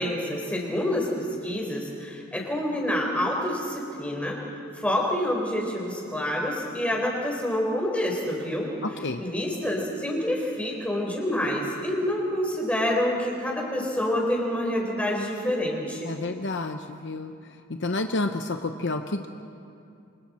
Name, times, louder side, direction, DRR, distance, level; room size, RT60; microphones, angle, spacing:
voice 1, 0.0-4.4 4.8-8.7 9.2-16.1, left 1 dB, 5° left, -2 dB, 4.1 m, -27 dB
voice 2, 8.8-9.2 16.0-17.3 17.7-19.3, left 2 dB, 55° left, 6 dB, 0.8 m, -29 dB
28.5 x 25.5 x 4.3 m, 2.5 s
head